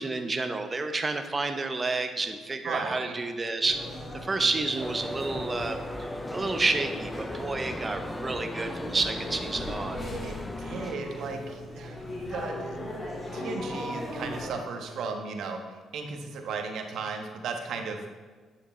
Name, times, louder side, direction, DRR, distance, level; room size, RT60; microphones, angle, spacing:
voice 1, 0.0-3.8 4.2-10.1, right 3 dB, 25° right, 7 dB, 0.9 m, -30 dB
voice 2, 2.6-3.2 10.2-12.0 12.2-12.9 13.3-18.1, right 4 dB, 75° right, 4 dB, 1.2 m, -36 dB
sound 1, 3.6-14.5, left 1 dB, 30° left, 2.3 m, -38 dB
sound 2, 4.8-11.0, left 1 dB, 10° left, 0.5 m, -37 dB
9.2 x 6.6 x 4.4 m, 1.4 s
cardioid pair, 90°, 0 cm